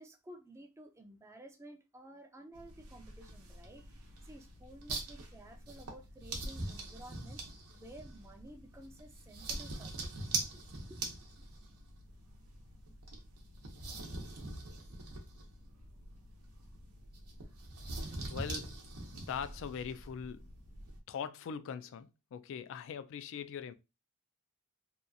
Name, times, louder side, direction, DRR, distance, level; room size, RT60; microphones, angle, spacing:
voice 1, 0.0-7.4 7.7-10.1 10.5-10.6 10.9-11.0, right 1 dB, 15° right, 0.4 m, -53 dB
sound 1, 2.5-21.0, right 2 dB, 90° right, 0.7 m, -44 dB
voice 2, 18.3-18.8 19.1-20.5 21.1-23.7, left 7 dB, 60° left, 0.3 m, -41 dB
2.8 x 2.3 x 2.5 m
head